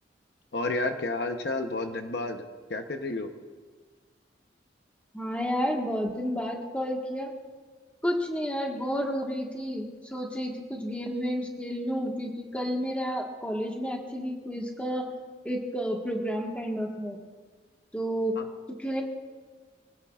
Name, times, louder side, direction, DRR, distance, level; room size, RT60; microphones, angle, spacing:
voice 1, 0.5-2.4 2.7-3.3 18.4-18.5, left 2 dB, 65° left, 6 dB, 0.9 m, -31 dB
voice 2, 5.1-7.3 8.0-15.1 15.4-17.2 17.9-18.4 18.8-19.0, equal, 5° left, 0 dB, 1.6 m, -31 dB
24.5 x 17.0 x 2.5 m, 1.4 s
head